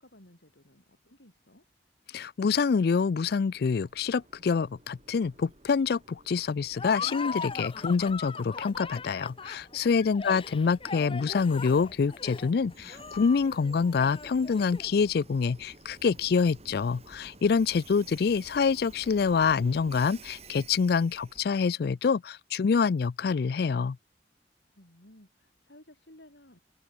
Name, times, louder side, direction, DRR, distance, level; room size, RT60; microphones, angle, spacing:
voice 1, 0.0-1.6 24.7-26.6, left 1 dB, 75° left, 6.5 m, -55 dB
voice 2, 2.1-24.0, left 5 dB, 60° left, 0.4 m, -26 dB
Train, 3.0-21.6, right 2 dB, 35° right, 3.6 m, -53 dB
Laughter, 6.8-15.0, left 4 dB, 30° left, 1.0 m, -39 dB
head